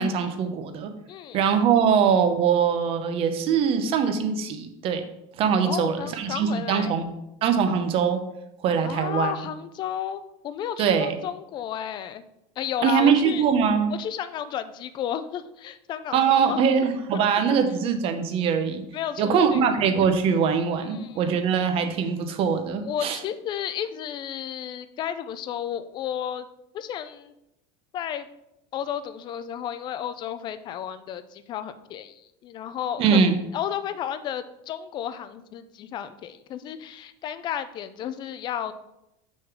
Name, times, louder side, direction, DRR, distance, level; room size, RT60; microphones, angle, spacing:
voice 1, 0.0-0.9 1.3-5.1 5.4-7.1 7.4-8.2 8.6-9.3 10.8-11.2 12.8-13.9 16.1-18.8 19.2-23.2 33.0-33.4, right 6 dB, 35° right, 7 dB, 0.7 m, -22 dB
voice 2, 1.1-1.4 5.6-6.9 8.8-12.2 12.6-13.4 14.0-16.6 17.1-17.6 18.9-19.6 20.9-21.2 22.8-26.5 26.7-27.3 27.9-28.3 28.7-33.2 33.5-38.7, left 9 dB, 30° left, 12 dB, 0.4 m, -32 dB
6.2 x 3.8 x 6.0 m, 0.85 s
cardioid pair, 165°, 16 cm